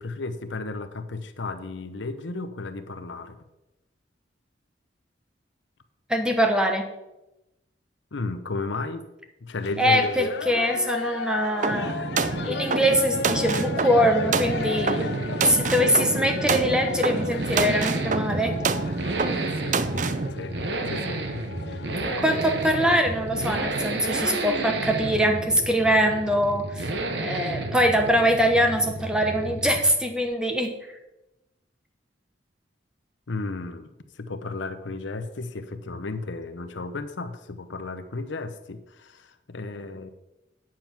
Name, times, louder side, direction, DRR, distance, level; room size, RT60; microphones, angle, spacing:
voice 1, 0.0-3.4 8.1-9.1 9.4-10.3 19.2-19.8 20.3-21.3 22.1-22.6 33.3-40.1, left 3 dB, 80° left, 10 dB, 0.8 m, -34 dB
voice 2, 6.1-6.9 9.8-12.1 12.4-15.1 15.4-18.5 22.0-26.9 27.2-30.9, equal, 5° right, 4 dB, 1.1 m, -23 dB
sound 1, 9.5-23.6, left 5 dB, 60° left, 0.4 m, -36 dB
sound 2, 11.6-20.3, right 4 dB, 40° right, 0.5 m, -27 dB
Accelerating revving vroom, 11.9-30.1 30.3-30.4, right 2 dB, 65° right, 1.2 m, -32 dB
8.9 x 7.7 x 5.9 m, 0.96 s
head